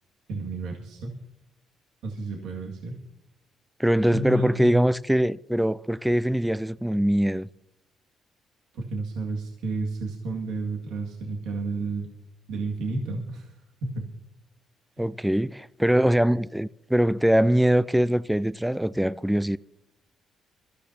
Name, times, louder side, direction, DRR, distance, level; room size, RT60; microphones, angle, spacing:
voice 1, 0.3-1.2 2.0-3.0 4.1-4.8 8.7-12.1 12.5-13.5 13.8-14.1 15.0-15.1, right 2 dB, 90° right, 2.0 m, -31 dB
voice 2, 3.8-7.5 15.0-19.6, equal, 5° right, 0.4 m, -22 dB
23.5 x 14.0 x 2.8 m
cardioid pair, 90°, 0 cm